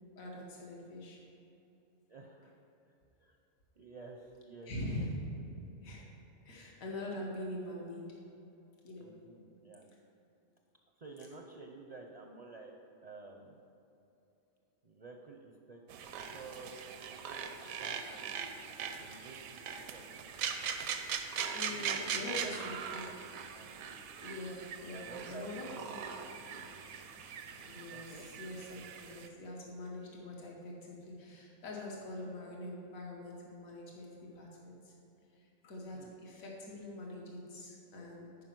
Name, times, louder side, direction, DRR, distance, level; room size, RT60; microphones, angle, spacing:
voice 1, 0.1-1.2 4.7-5.2 5.8-6.1 6.4-8.2 8.8-9.1 21.5-23.1 24.2-26.0 27.6-34.9 35.3-38.3, left 1 dB, 80° left, -2 dB, 1.6 m, -44 dB
voice 2, 2.1-2.5 3.2-3.4 3.8-5.1 9.0-9.9 11.0-12.7 13.0-13.6 14.8-15.8 16.3-18.5 18.9-19.6 19.9-20.3 21.6-22.1 22.4-23.2 23.5-23.8 24.8-25.9 26.1-26.5 27.9-28.2 35.9-36.1, right 3 dB, 50° right, 2 dB, 0.5 m, -51 dB
sound 1, 15.9-29.3, right 7 dB, 85° right, 1.1 m, -41 dB
9.5 x 5.0 x 6.0 m, 2.9 s
omnidirectional pair, 1.4 m